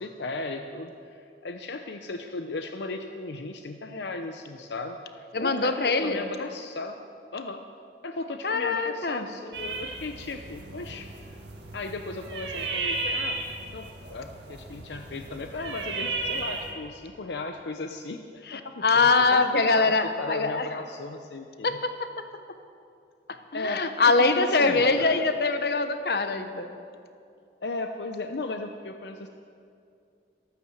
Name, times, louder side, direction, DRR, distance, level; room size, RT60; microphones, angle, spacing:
voice 1, 0.0-7.0 7.3-7.6 8.0-11.4 11.7-13.4 13.7-19.5 19.7-21.8 23.5-25.2 27.6-29.3, left 3 dB, 75° left, 5 dB, 0.7 m, -36 dB
voice 2, 5.3-6.2 8.4-9.3 18.5-20.7 21.6-22.1 23.5-26.7, left 3 dB, 60° left, 8 dB, 1.0 m, -23 dB
sound 1, 9.5-16.7, right 3 dB, 85° right, 2.1 m, -34 dB
13.0 x 12.5 x 7.8 m, 2.5 s
head